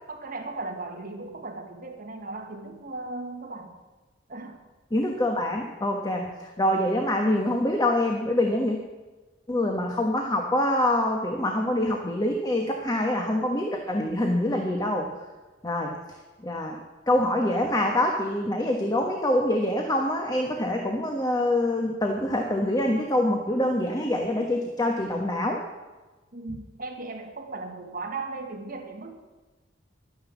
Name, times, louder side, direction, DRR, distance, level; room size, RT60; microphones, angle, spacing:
voice 1, 0.1-3.7 4.3-4.6 26.3-29.1, right 3 dB, 50° right, 2 dB, 1.9 m, -37 dB
voice 2, 4.9-6.3 6.6-8.8 9.5-15.1 15.6-15.9 16.4-16.8 17.1-25.6, left 1 dB, 20° left, 2 dB, 1.3 m, -25 dB
12.5 x 9.9 x 7.2 m, 1.2 s
head